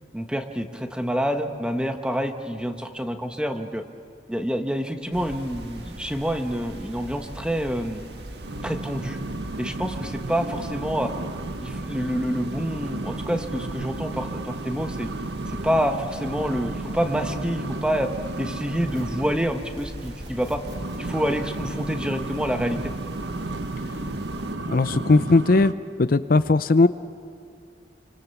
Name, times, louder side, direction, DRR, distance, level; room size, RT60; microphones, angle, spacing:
voice 1, 0.1-3.8 4.3-8.0 8.6-9.2 9.6-11.1 11.6-15.1 15.5-18.1 18.4-20.6 20.9-22.9, equal, 5° right, 6 dB, 1.3 m, -27 dB
sound 1, 5.1-24.6, right 1 dB, 70° right, 1.7 m, -40 dB
sound 2, 8.4-19.5 20.6-25.7, right 2 dB, 90° right, 0.9 m, -33 dB
sound 3, 18.9-19.3 19.8-25.0, right 1 dB, 25° right, 3.1 m, -46 dB
voice 2, 24.7-25.7 26.0-26.9, left 3 dB, 55° left, 12 dB, 0.5 m, -18 dB
29.5 x 25.0 x 7.1 m, 2.5 s
head